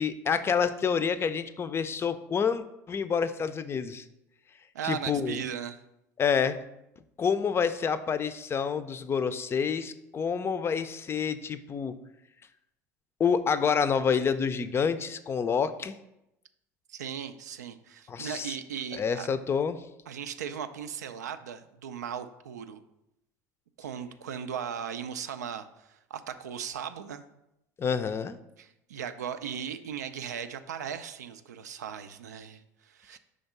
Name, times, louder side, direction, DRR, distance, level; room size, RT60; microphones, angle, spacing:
voice 1, 0.0-4.0 4.8-5.4 6.2-6.6 7.2-11.9 13.2-15.9 18.1-18.6 18.9-19.8 27.8-28.4, left 6 dB, 30° left, 13 dB, 0.4 m, -28 dB
voice 2, 4.7-5.8 16.9-19.3 20.1-22.8 23.8-27.2 28.6-33.2, right 8 dB, 80° right, 10 dB, 0.4 m, -37 dB
5.1 x 3.5 x 5.3 m, 0.87 s
hypercardioid pair, 70°, 9 cm